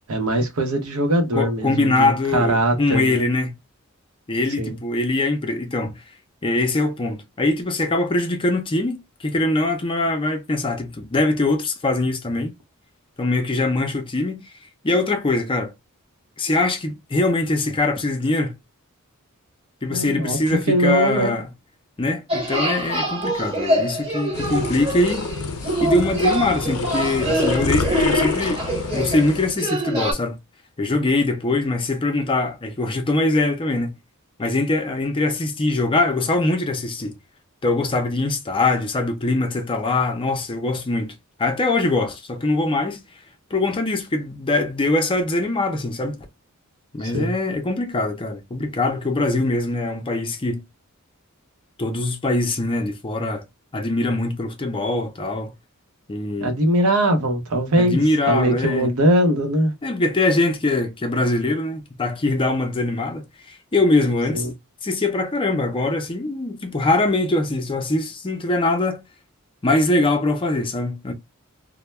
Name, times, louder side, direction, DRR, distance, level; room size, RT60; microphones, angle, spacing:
voice 1, 0.1-3.3 4.6-4.8 19.9-21.4 47.0-47.3 56.4-58.0 58.3-59.7 64.3-64.5, right 1 dB, 75° right, 0.8 m, -21 dB
voice 2, 1.3-3.5 4.3-5.9 6.4-12.5 13.2-14.4 14.8-15.7 16.4-18.5 19.8-21.5 22.0-25.3 25.8-28.6 28.9-30.4 30.8-33.9 34.4-37.2 37.6-41.1 41.4-43.0 43.5-46.2 46.9-50.6 51.8-53.4 53.7-55.5 56.1-56.5 57.8-58.9 59.8-64.5 64.8-69.0 69.6-71.1, left 2 dB, 25° left, 0.5 m, -22 dB
sound 1, 22.3-30.1, right 1 dB, 25° right, 0.9 m, -25 dB
sound 2, 24.3-29.5, left 5 dB, 80° left, 0.4 m, -27 dB
2.1 x 2.1 x 3.1 m
head